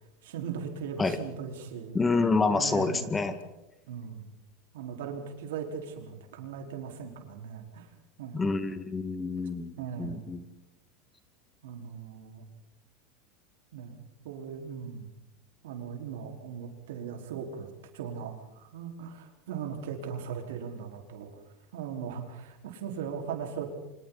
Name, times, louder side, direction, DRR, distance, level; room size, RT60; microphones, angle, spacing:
voice 1, 0.2-2.0 2.5-3.4 3.9-4.2 4.7-7.9 8.2-8.5 9.8-10.2 11.6-12.4 13.7-15.1 15.6-21.4 21.7-23.7, right 7 dB, 85° right, 3 dB, 4.8 m, -39 dB
voice 2, 1.9-3.4 8.3-10.4, left 4 dB, 15° left, 10 dB, 2.0 m, -28 dB
29.5 x 26.0 x 4.2 m, 0.97 s
supercardioid pair, 120°, 0 cm